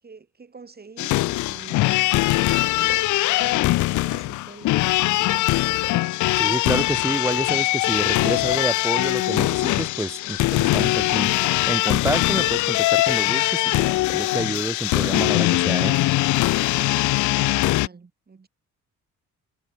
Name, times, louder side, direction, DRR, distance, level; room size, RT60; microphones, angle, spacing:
voice 1, 0.0-5.7 17.0-18.5, right 4 dB, 30° right, 4.7 m, -46 dB
sound 1, 1.0-17.9, left 18 dB, 75° left, 0.5 m, -21 dB
voice 2, 6.4-16.0, right 1 dB, 10° right, 2.9 m, -29 dB
cardioid pair, 90°, 30 cm